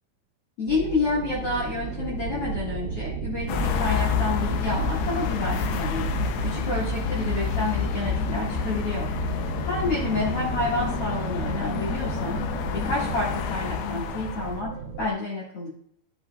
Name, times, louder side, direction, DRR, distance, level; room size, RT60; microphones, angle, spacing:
voice 1, 0.6-6.1 6.4-9.1 9.4-12.5 12.7-15.7, left 3 dB, 45° left, -7 dB, 2.4 m, -29 dB
sound 1, 0.7-15.1, right 5 dB, 90° right, 1.5 m, -33 dB
sound 2, 3.5-14.6, left 8 dB, 85° left, 2.7 m, -29 dB
13.5 x 8.1 x 2.4 m, 0.67 s
omnidirectional pair, 4.5 m